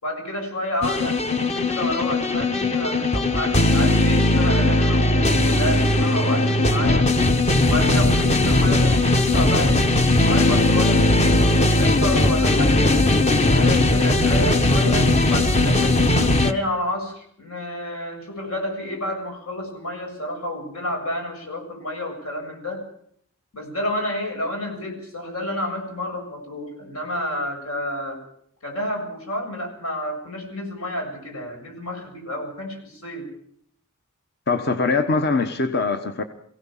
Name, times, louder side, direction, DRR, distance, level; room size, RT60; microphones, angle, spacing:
voice 1, 0.0-7.1 7.6-9.9 10.2-13.2 13.5-22.8 23.5-28.2 28.6-33.3, left 1 dB, 75° left, 3 dB, 7.0 m, -30 dB
sound 1, 0.8-16.5, left 1 dB, 30° left, 1.1 m, -18 dB
voice 2, 34.5-36.2, left 3 dB, 45° left, 8 dB, 1.3 m, -22 dB
23.5 x 17.0 x 7.4 m, 0.65 s
head